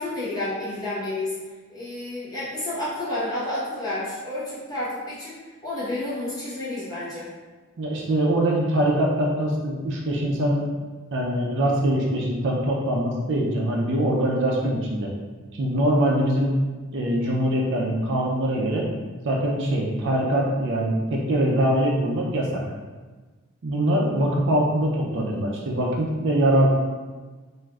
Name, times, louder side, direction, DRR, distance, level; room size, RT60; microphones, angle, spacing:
voice 1, 0.0-1.3 1.7-5.3 5.6-7.3, left 1 dB, 15° left, -10 dB, 0.9 m, -30 dB
voice 2, 7.8-10.6 11.1-15.1 15.5-16.6 16.9-18.9 19.2-22.6 23.6-26.7, right 1 dB, 55° right, -2 dB, 0.4 m, -23 dB
3.2 x 2.5 x 2.3 m, 1.3 s
head